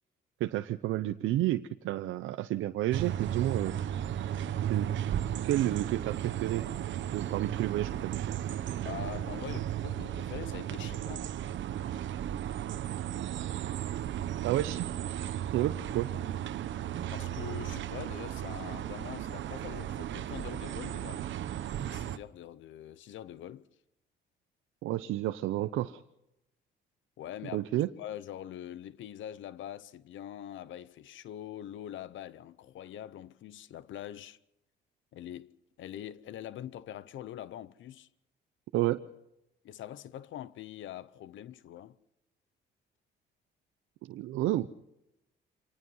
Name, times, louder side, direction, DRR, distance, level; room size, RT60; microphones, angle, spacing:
voice 1, 0.4-3.7 4.7-4.9 5.4-6.6 7.1-8.4 14.4-14.9 15.5-16.1 24.8-26.0 27.5-27.9 38.7-39.0 44.1-44.7, right 15 dB, 90° right, 0.7 m, -30 dB
sound 1, 2.9-22.2, right 11 dB, 70° right, 1.0 m, -35 dB
voice 2, 8.8-11.3 17.1-21.3 21.7-23.7 27.2-27.6 28.0-34.4 35.1-38.1 39.6-42.0, left 11 dB, 75° left, 0.8 m, -44 dB
25.0 x 19.5 x 5.5 m
cardioid pair, 90°, 20 cm